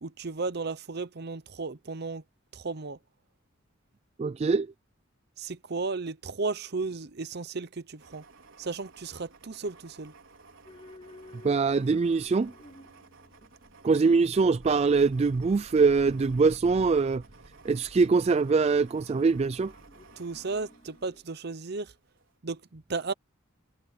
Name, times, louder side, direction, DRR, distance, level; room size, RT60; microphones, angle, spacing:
voice 1, 0.0-2.2 2.5-3.0 5.4-8.2 8.6-10.1 20.2-21.9 22.4-23.1, right 3 dB, 55° right, 0.8 m, -34 dB
voice 2, 4.2-4.7 11.4-12.5 13.8-17.2 17.6-19.7, right 4 dB, 30° right, 0.3 m, -23 dB
sound 1, 8.0-21.7 22.1-22.3, right 2 dB, 75° right, 4.8 m, -53 dB
sound 2, 10.6-21.2, left 1 dB, 25° left, 3.1 m, -55 dB
head